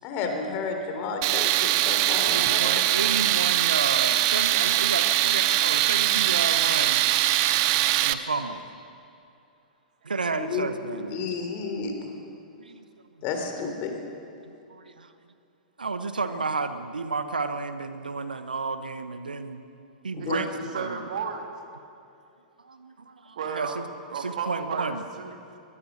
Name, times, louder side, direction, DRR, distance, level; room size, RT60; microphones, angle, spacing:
voice 1, 0.0-2.8 10.4-11.9 13.2-13.9 20.1-20.4, left 4 dB, 35° left, 4 dB, 3.7 m, -31 dB
Tools, 1.2-8.1, right 15 dB, 40° right, 0.8 m, -22 dB
voice 2, 2.2-7.1 8.0-8.6 10.0-11.2 12.6-12.8 14.4-15.1 15.8-19.6 20.0-20.5 20.7-21.0 22.6-23.8 24.2-25.0, right 4 dB, 75° right, 10 dB, 1.1 m, -32 dB
voice 3, 20.2-21.5 23.4-25.4, right 6 dB, 55° right, 4 dB, 2.7 m, -34 dB
22.5 x 21.0 x 6.6 m, 2.6 s
figure-of-eight pair, 105°, 5 cm